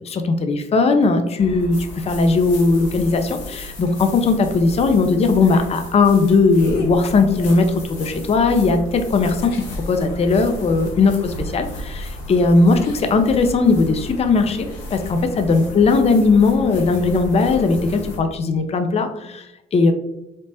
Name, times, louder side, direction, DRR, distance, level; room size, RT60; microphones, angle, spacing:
voice 1, 0.0-19.9, left 3 dB, 30° left, 7 dB, 0.4 m, -18 dB
sound 1, 1.4-18.2, left 1 dB, 85° left, 0.7 m, -34 dB
3.3 x 2.0 x 2.7 m, 0.89 s
hypercardioid pair, 55°, 21 cm